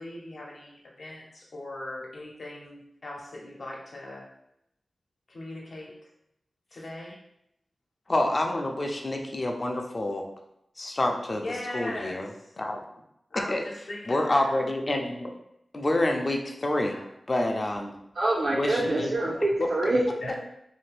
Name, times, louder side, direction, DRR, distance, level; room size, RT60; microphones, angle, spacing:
voice 1, 0.0-4.3 5.3-5.9 6.7-7.2 11.3-12.5 13.3-14.6 16.9-17.0 20.2-20.4, left 1 dB, 70° left, -3 dB, 0.8 m, -39 dB
voice 2, 8.1-10.2 10.8-11.4 11.7-12.3 12.6-12.8 13.5-13.6 14.0-15.3 15.7-17.0 17.3-17.9 18.5-19.1 19.6-19.7, left 1 dB, 45° left, 2 dB, 0.5 m, -27 dB
voice 3, 18.2-20.0, right 2 dB, 75° right, -4 dB, 0.5 m, -25 dB
2.6 x 2.5 x 3.2 m, 0.81 s
cardioid pair, 50°, 0 cm